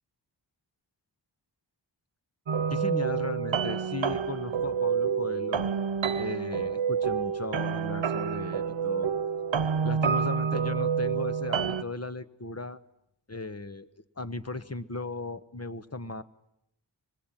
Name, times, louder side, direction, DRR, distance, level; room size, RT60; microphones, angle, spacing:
sound 1, 2.5-11.8, right 6 dB, 90° right, 0.9 m, -28 dB
voice 1, 2.7-5.7 6.2-9.1 9.8-12.8 13.3-13.9 14.2-16.2, left 3 dB, 35° left, 12 dB, 1.2 m, -37 dB
25.0 x 22.0 x 9.1 m, 0.80 s
wide cardioid pair, 55°, 44 cm